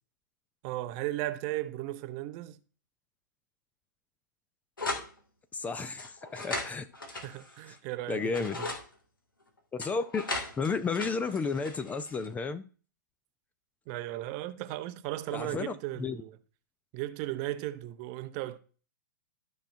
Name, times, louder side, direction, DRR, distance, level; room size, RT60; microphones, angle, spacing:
voice 1, 0.6-2.6 7.1-8.7 13.9-16.4 16.9-18.6, right 15 dB, 35° right, 0.7 m, -36 dB
sound 1, 4.8-5.1 6.0-7.8 8.2-8.8 9.8-12.3, left 2 dB, 85° left, 1.9 m, -37 dB
voice 2, 5.5-6.8 7.7-7.8 8.1-8.6 9.7-10.2 10.6-12.6 15.3-16.2, left 4 dB, 15° left, 0.4 m, -32 dB
13.0 x 5.5 x 2.6 m
figure-of-eight pair, 110°, 11 cm